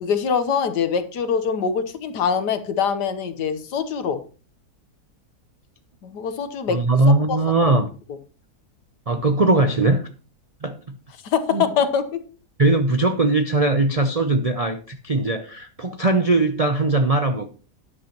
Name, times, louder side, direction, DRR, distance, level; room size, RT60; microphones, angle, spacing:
voice 1, 0.0-4.2 6.0-6.8 7.3-7.4 11.2-12.0, left 6 dB, 85° left, 10 dB, 1.7 m, -23 dB
voice 2, 6.7-7.9 9.1-10.1 10.6-10.9 11.5-11.6 12.6-17.5, right 2 dB, 50° right, 6 dB, 0.4 m, -20 dB
13.0 x 10.0 x 3.0 m, 0.37 s
omnidirectional pair, 1.8 m